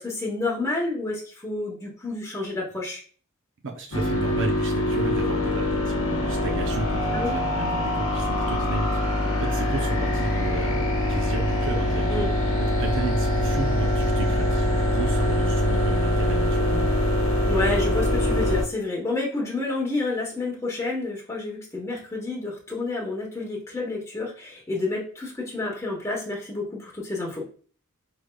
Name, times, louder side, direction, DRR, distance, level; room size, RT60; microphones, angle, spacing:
voice 1, 0.0-3.0 7.1-7.3 9.2-9.4 12.1-12.3 17.5-27.4, left 2 dB, 15° left, -3 dB, 0.9 m, -29 dB
voice 2, 3.6-12.3 12.8-17.0, right 3 dB, 60° right, 3 dB, 0.6 m, -33 dB
sound 1, 3.9-18.6, left 1 dB, 75° left, 1.0 m, -24 dB
4.9 x 3.3 x 2.2 m, 0.43 s
head